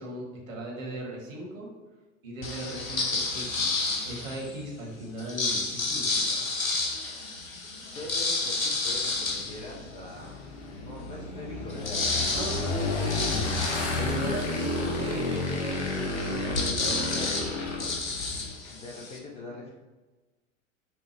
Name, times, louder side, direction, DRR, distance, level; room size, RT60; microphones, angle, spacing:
voice 1, 0.0-1.7 2.2-6.4 12.3-12.5 13.9-17.5 17.8-17.9, right 1 dB, 75° right, -2 dB, 1.2 m, -38 dB
sound 1, 2.4-4.6 5.2-10.4 10.8-10.9 11.2-19.2, left 3 dB, 90° left, 0.7 m, -31 dB
voice 2, 7.8-10.4 10.7-13.9 18.7-19.7, left 2 dB, 15° left, -2 dB, 0.3 m, -43 dB
Motorcycle / Engine, 8.9-18.5, left 3 dB, 65° left, 0.9 m, -31 dB
4.5 x 2.0 x 3.1 m, 1.2 s
figure-of-eight pair, 90°, 40 cm